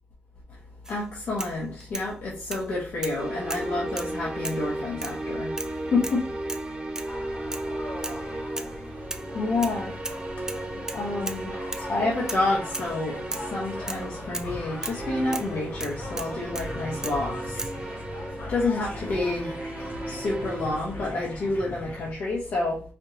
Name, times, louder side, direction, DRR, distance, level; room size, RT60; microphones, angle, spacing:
sound 1, 0.8-1.0 1.4-2.1 2.5-2.7 3.0-3.2 3.5-4.1 4.4-4.7 5.0-5.2 5.6-5.8 6.0-6.2 6.5-6.7 7.0-7.1 7.5-7.7 8.0-8.2 8.6-8.8 9.1-9.8 10.0-10.2 10.5-11.4 11.7-11.9 12.3-12.5 12.7-12.9 13.3-13.5 13.9-14.0 14.3-14.5 14.8-15.0 15.3-15.5 15.8-16.7 17.0-17.2 17.6-17.8, right 2 dB, 15° right, 0.4 m, -36 dB
voice 1, 0.9-5.5 5.9-6.2 9.3-9.9 10.9-11.5 11.8-19.6 20.1-22.8, left 2 dB, 85° left, 1.2 m, -29 dB
sound 2, 3.2-21.2, right 1 dB, 35° right, 1.0 m, -35 dB
sound 3, 7.1-22.1, left 1 dB, 60° left, 1.2 m, -39 dB
5.0 x 2.5 x 2.7 m
wide cardioid pair, 110°, 4 cm